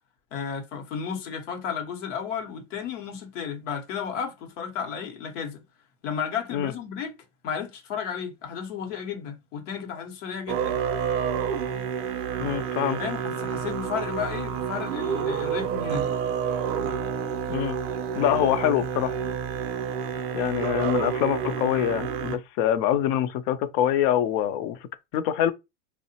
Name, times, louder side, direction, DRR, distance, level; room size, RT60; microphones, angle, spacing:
voice 1, 0.3-5.6 6.0-7.1 7.4-10.7 13.0-16.1, left 7 dB, 80° left, 0.8 m, -33 dB
Musical instrument, 10.5-22.4, right 7 dB, 40° right, 0.4 m, -29 dB
voice 2, 12.4-13.0 17.5-17.8 18.2-19.1 20.3-24.8 25.1-25.5, left 11 dB, 55° left, 0.4 m, -25 dB
2.7 x 2.0 x 2.7 m
supercardioid pair, 110°, 37 cm